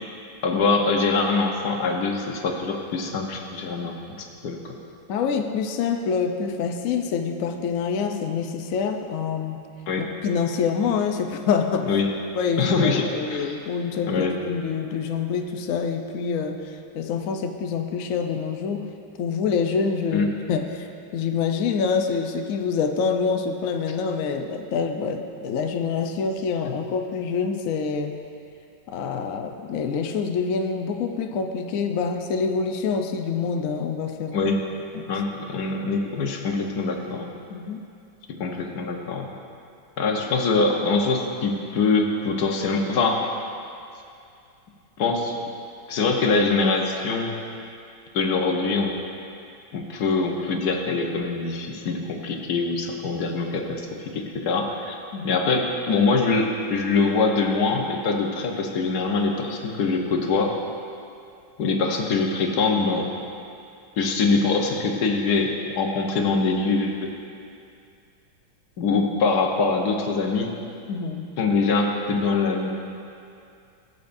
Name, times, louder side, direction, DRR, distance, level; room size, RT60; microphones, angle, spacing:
voice 1, 0.4-4.0 4.4-4.8 9.9-10.0 11.9-12.1 12.6-13.6 14.1-14.3 20.1-20.3 26.7-26.8 34.3-34.6 35.1-37.3 38.4-39.3 40.0-43.2 45.0-45.3 45.9-47.3 48.1-48.9 49.7-55.0 55.2-60.6 61.6-63.1 64.0-67.1 68.8-70.5 71.4-72.7, left 4 dB, 60° left, 2 dB, 1.3 m, -23 dB
voice 2, 5.1-9.6 10.0-11.9 12.4-18.9 19.2-28.2 28.9-34.4 34.9-35.0 37.5-37.8 55.1-55.4 70.9-71.3, left 5 dB, 85° left, 4 dB, 0.7 m, -26 dB
19.0 x 8.0 x 2.6 m, 2.5 s
omnidirectional pair, 2.2 m